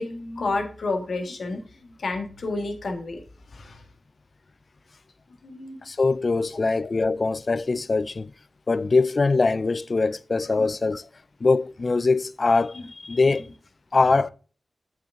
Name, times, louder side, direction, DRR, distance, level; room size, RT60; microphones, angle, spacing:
voice 1, 0.0-3.2 3.5-3.8 5.4-5.9 6.7-6.8 10.6-10.7 12.7-12.8, left 3 dB, 80° left, 1.8 m, -31 dB
voice 2, 5.8-8.3 8.7-11.1 11.4-13.5 13.9-14.3, left 3 dB, 55° left, 0.5 m, -22 dB
7.9 x 7.1 x 3.7 m
cardioid pair, 40°, 0 cm